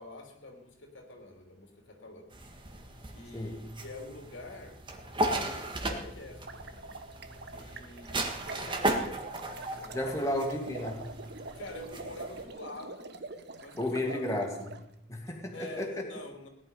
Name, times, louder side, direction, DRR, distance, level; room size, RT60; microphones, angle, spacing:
voice 1, 0.0-2.3 3.1-4.7 5.3-6.9 7.5-9.3 9.7-10.4 11.5-13.1 13.5-14.3 15.5-16.5, left 2 dB, 85° left, 3 dB, 3.1 m, -46 dB
sound 1, 2.3-12.4, right 1 dB, 25° right, 1.8 m, -36 dB
sound 2, 6.3-14.8, right 3 dB, 60° right, 1.1 m, -45 dB
voice 2, 9.9-11.1 13.8-14.8 15.1-16.1, left 1 dB, 15° left, 0 dB, 2.4 m, -33 dB
17.5 x 11.0 x 5.5 m, 0.75 s
head